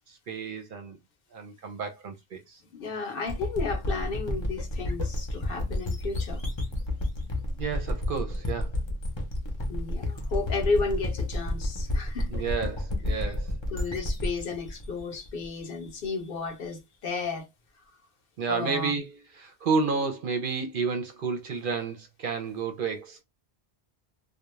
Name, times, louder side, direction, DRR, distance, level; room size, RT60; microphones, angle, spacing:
voice 1, 0.1-1.0 1.3-2.6 7.6-8.7 12.3-13.5 18.4-23.2, right 5 dB, 60° right, 0.7 m, -31 dB
voice 2, 2.7-6.4 9.7-12.4 13.1-13.3 13.7-17.5 18.5-18.9, left 4 dB, 60° left, 0.8 m, -33 dB
sound 1, 3.3-15.9, left 1 dB, 30° left, 0.6 m, -31 dB
2.3 x 2.1 x 3.0 m
omnidirectional pair, 1.1 m